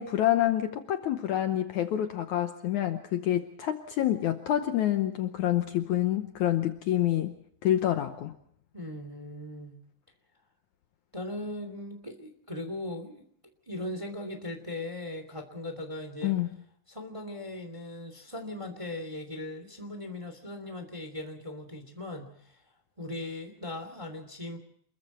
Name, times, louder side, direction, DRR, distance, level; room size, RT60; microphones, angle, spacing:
voice 1, 0.0-7.3 7.6-8.4 16.2-16.5, left 12 dB, 70° left, 7 dB, 2.0 m, -27 dB
voice 2, 8.7-9.8 11.1-13.2 13.7-16.3 16.9-22.6 23.0-24.6, left 1 dB, 10° right, 6 dB, 2.0 m, -39 dB
28.0 x 22.5 x 4.4 m, 0.66 s
omnidirectional pair, 4.1 m